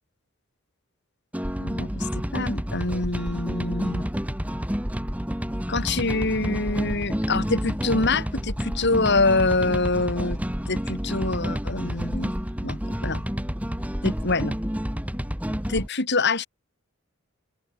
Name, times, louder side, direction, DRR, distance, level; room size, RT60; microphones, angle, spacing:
sound 1, 1.3-15.9, equal, 5° right, 2.8 m, -29 dB
voice 1, 1.6-4.0 5.7-10.4 10.7-12.4 12.6-13.2 14.0-14.6 15.7-16.5, left 3 dB, 55° left, 3.1 m, -25 dB
head